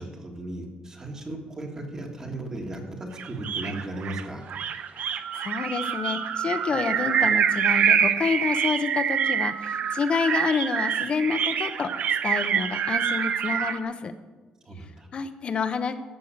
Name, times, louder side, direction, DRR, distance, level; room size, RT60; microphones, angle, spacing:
voice 1, 0.0-4.5 4.7-4.9 14.6-15.1, right 1 dB, 20° right, 1 dB, 1.7 m, -36 dB
sound 1, 3.2-13.8, right 8 dB, 55° right, 0.8 m, -26 dB
voice 2, 5.3-11.9 12.2-14.1 15.1-15.9, left 5 dB, 35° left, 10 dB, 0.8 m, -28 dB
13.5 x 6.3 x 8.8 m, 1.2 s
cardioid pair, 165°, 3 cm